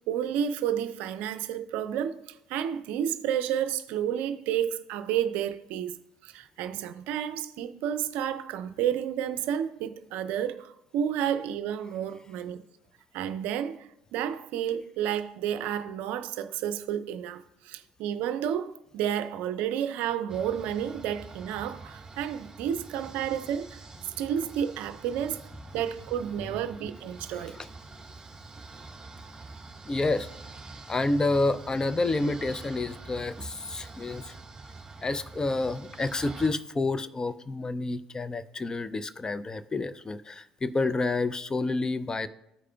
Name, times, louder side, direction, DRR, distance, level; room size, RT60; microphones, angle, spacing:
voice 1, 0.1-6.0 6.2-12.6 13.1-23.8 24.2-25.4 25.7-27.6, right 9 dB, 70° right, 0.4 m, -31 dB
sound 1, 20.3-36.5, right 3 dB, 25° right, 1.6 m, -46 dB
voice 2, 29.9-30.3 30.9-34.4 35.0-42.3, left 2 dB, 25° left, 0.5 m, -29 dB
14.0 x 4.8 x 2.3 m
hypercardioid pair, 60°, 3 cm